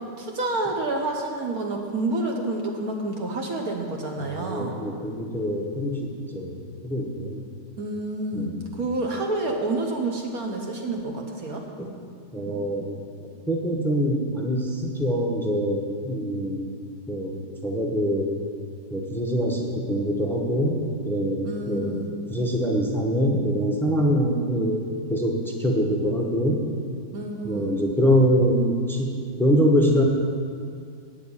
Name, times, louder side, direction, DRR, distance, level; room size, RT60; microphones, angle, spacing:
voice 1, 0.2-4.8 7.8-11.6 21.4-22.1 27.1-27.8, right 2 dB, 55° right, 1 dB, 1.2 m, -28 dB
voice 2, 4.2-7.4 8.3-8.7 11.8-11.9 12.3-12.9 13.5-16.6 17.1-18.3 18.9-21.9 22.3-26.6 27.4-30.0, equal, 5° left, 0 dB, 0.3 m, -24 dB
9.0 x 7.0 x 8.5 m, 2.2 s
omnidirectional pair, 2.1 m